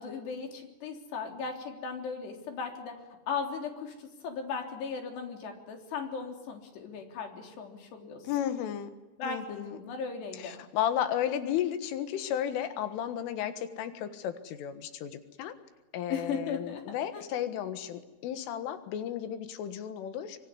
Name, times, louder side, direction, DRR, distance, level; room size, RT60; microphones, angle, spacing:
voice 1, 0.0-3.0 3.3-8.5 9.2-10.5 16.1-16.8 17.1-17.2, left 5 dB, 60° left, 3 dB, 5.6 m, -37 dB
voice 2, 8.3-8.9 9.2-9.8 10.4-15.5 15.9-20.5, left 10 dB, 90° left, 9 dB, 4.1 m, -33 dB
25.0 x 24.0 x 9.7 m, 1.1 s
omnidirectional pair, 5.5 m